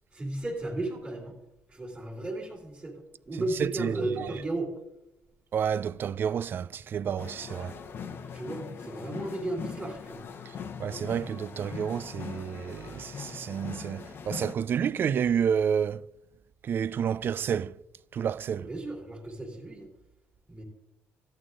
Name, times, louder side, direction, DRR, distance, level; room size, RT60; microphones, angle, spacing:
voice 1, 0.1-1.3 1.7-4.7 8.3-10.2 18.7-19.9 20.5-20.6, right 2 dB, 20° right, 2.3 m, -35 dB
voice 2, 3.6-4.3 5.5-7.7 10.8-16.0 16.6-17.8 18.1-18.7, right 8 dB, 45° right, 0.4 m, -30 dB
sound 1, 7.2-14.5, left 6 dB, 50° left, 0.9 m, -41 dB
14.0 x 8.7 x 3.7 m
cardioid pair, 125°, 5 cm